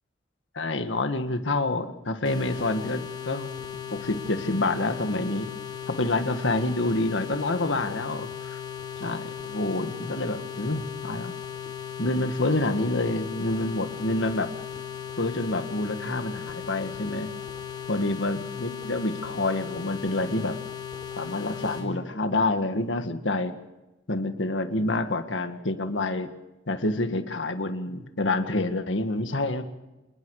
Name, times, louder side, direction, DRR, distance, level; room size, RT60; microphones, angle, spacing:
voice 1, 0.6-5.5 5.9-8.6 9.0-11.3 12.0-14.5 15.2-17.3 17.9-20.6 21.2-23.5 24.1-26.3 26.7-29.6, left 2 dB, 75° left, 8 dB, 1.8 m, -27 dB
sound 1, 2.2-21.9, left 8 dB, 25° left, 4.1 m, -37 dB
27.0 x 20.5 x 4.9 m, 1.0 s
head